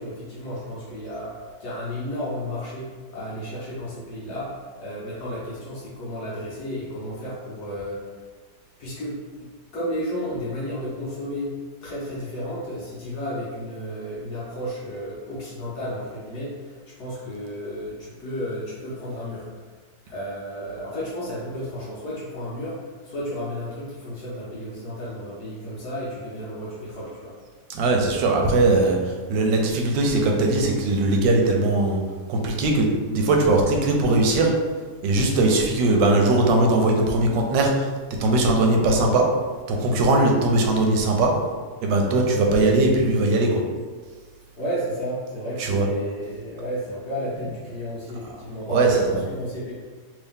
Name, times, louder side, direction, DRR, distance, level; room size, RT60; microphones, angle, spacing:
voice 1, 0.0-8.2 8.8-11.6 11.8-19.6 20.1-27.3 42.1-42.2 44.6-49.7, equal, 65° left, -8 dB, 1.4 m, -33 dB
voice 2, 27.7-29.0 29.3-32.0 32.3-34.5 35.0-37.9 38.2-39.3 39.7-41.3 41.8-43.6 45.6-45.9 48.7-48.9, right 2 dB, 85° right, 1 dB, 1.3 m, -20 dB
3.3 x 2.7 x 3.5 m, 1.5 s
omnidirectional pair, 1.9 m